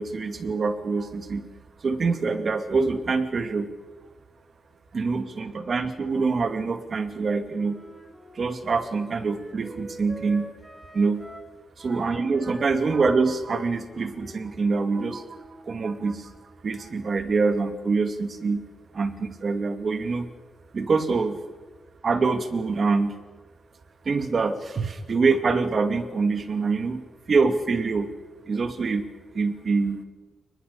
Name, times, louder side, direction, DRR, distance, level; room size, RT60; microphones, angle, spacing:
voice 1, 0.0-1.4 1.8-3.7 4.9-7.8 8.3-10.5 10.9-11.2 11.8-15.4 15.6-16.3 16.6-18.6 18.9-20.3 20.7-21.4 22.0-23.2 24.0-27.0 27.3-28.1 28.5-29.1 29.3-30.0, right 4 dB, 40° right, 8 dB, 2.3 m, -25 dB
Wind instrument woodwind instrument, 7.5-11.5 11.8-15.7, right 1 dB, 5° right, 4.6 m, -46 dB
29.5 x 20.5 x 6.9 m, 1.2 s
wide cardioid pair, 165°, 0 cm